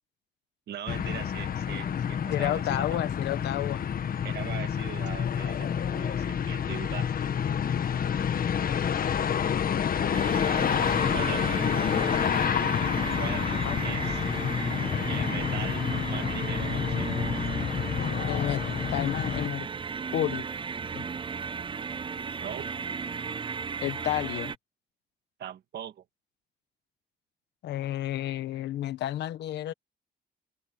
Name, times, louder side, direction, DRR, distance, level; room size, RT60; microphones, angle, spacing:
voice 1, 0.7-3.0 4.2-7.1 11.1-11.9 13.2-14.2 15.1-17.1 22.4-22.7 25.4-26.0, right 10 dB, 75° right, 2.0 m, -40 dB
sound 1, 0.9-19.5, left 8 dB, 55° left, 1.5 m, -28 dB
voice 2, 2.3-3.9 9.2-10.1 13.6-13.8 18.3-18.6 18.9-19.7 20.1-20.5 20.9-21.1 23.8-24.5 27.6-29.7, left 13 dB, 85° left, 1.2 m, -31 dB
sound 2, 10.1-24.6, right 5 dB, 30° right, 0.5 m, -35 dB
cardioid pair, 85°, 18 cm